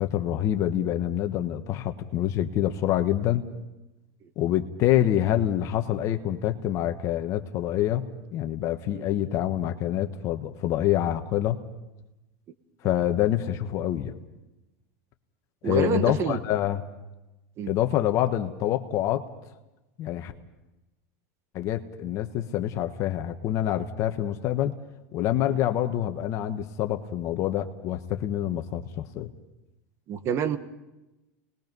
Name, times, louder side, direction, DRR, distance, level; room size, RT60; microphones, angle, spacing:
voice 1, 0.0-3.5 4.4-11.6 12.8-14.1 15.6-16.8 17.7-19.3 20.0-20.3 21.5-24.8 25.1-29.3, left 12 dB, 45° left, 6 dB, 1.3 m, -26 dB
voice 2, 15.6-16.4 17.6-17.7 30.1-30.6, right 8 dB, 35° right, 11 dB, 1.5 m, -27 dB
29.5 x 20.5 x 5.4 m, 1.0 s
supercardioid pair, 135°, 7 cm